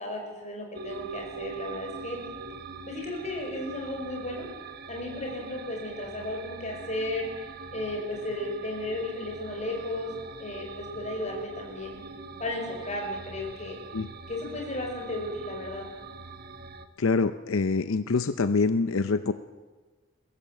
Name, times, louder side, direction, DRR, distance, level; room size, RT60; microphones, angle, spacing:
voice 1, 0.0-2.2 2.9-4.5 4.9-7.3 7.7-10.1 10.4-12.0 12.4-13.8 14.3-15.9, left 1 dB, 35° left, 1 dB, 5.1 m, -34 dB
sound 1, 0.7-16.9, right 4 dB, 50° right, 1.2 m, -43 dB
voice 2, 17.0-19.3, left 4 dB, 80° left, 11 dB, 0.6 m, -25 dB
22.0 x 16.5 x 7.6 m, 1.4 s
head